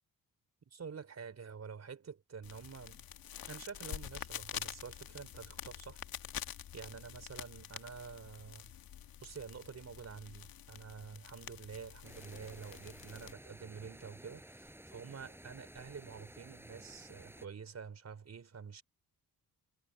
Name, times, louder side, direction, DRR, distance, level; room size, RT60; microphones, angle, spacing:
voice 1, 0.7-3.0 3.5-6.0 6.7-8.7 9.2-18.8, right 6 dB, 50° right, 4.6 m, -48 dB
sound 1, 2.4-13.3, left 10 dB, 85° left, 1.6 m, -47 dB
sound 2, 12.0-17.5, right 1 dB, 5° right, 7.6 m, -54 dB
cardioid pair, 110°, 34 cm